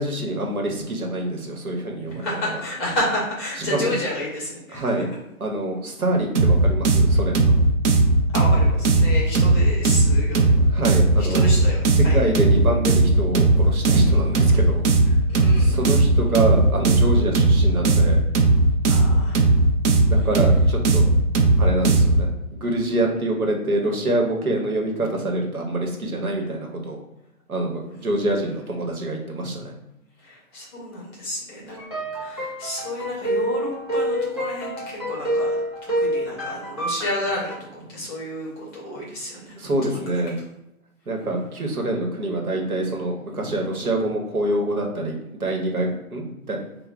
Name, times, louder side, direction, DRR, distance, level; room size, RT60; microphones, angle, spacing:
voice 1, 0.0-2.5 3.6-4.0 4.7-5.1 5.4-7.5 10.7-11.5 11.9-14.9 15.6-18.2 20.1-21.1 21.6-27.0 27.5-29.7 39.6-40.3 41.1-46.6, right 1 dB, 75° right, 1 dB, 1.1 m, -26 dB
voice 2, 2.1-4.9 8.3-10.5 11.2-12.2 15.3-15.8 18.9-19.4 28.0-28.4 30.2-31.8 32.2-35.5 35.8-37.6 37.9-39.7, left 1 dB, 15° left, -4 dB, 0.7 m, -31 dB
sound 1, 6.4-22.3, right 2 dB, 55° right, 0.6 m, -17 dB
sound 2, 31.8-37.6, equal, 20° right, 0.3 m, -27 dB
3.8 x 2.2 x 3.4 m, 0.85 s
figure-of-eight pair, 125°, 43 cm